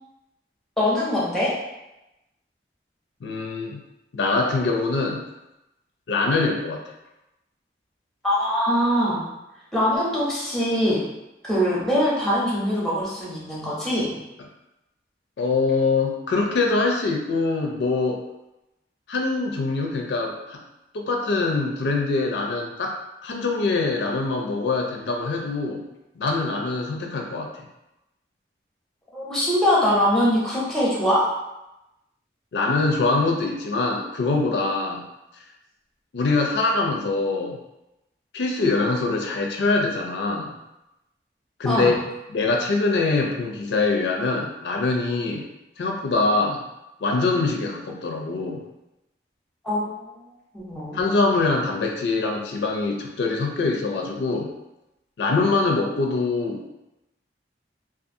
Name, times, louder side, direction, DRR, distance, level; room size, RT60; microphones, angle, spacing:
voice 1, 0.8-1.5 8.2-9.2 9.7-11.0 11.5-14.1 29.1-31.2 41.7-41.9 49.6-50.1 50.5-51.0, equal, ahead, -7 dB, 0.6 m, -22 dB
voice 2, 3.2-3.8 4.1-5.2 6.1-6.8 15.4-18.2 19.1-20.6 20.9-22.9 23.2-25.8 26.2-27.5 32.5-35.0 36.1-37.6 38.3-40.5 41.6-41.9 42.3-45.4 45.8-46.6 47.0-48.6 50.9-54.5 55.2-56.7, left 3 dB, 75° left, 1 dB, 0.4 m, -23 dB
2.6 x 2.3 x 2.5 m, 0.93 s
head